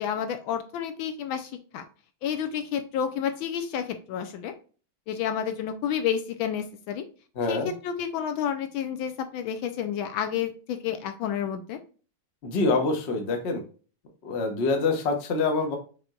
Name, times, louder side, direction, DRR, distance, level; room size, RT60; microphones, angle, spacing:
voice 1, 0.0-1.8 2.2-4.5 5.1-7.0 7.5-11.8, left 8 dB, 75° left, 7 dB, 1.3 m, -30 dB
voice 2, 7.4-7.7 12.4-13.6 14.2-15.8, left 3 dB, 50° left, 4 dB, 0.8 m, -25 dB
5.8 x 3.7 x 2.3 m, 0.38 s
omnidirectional pair, 2.3 m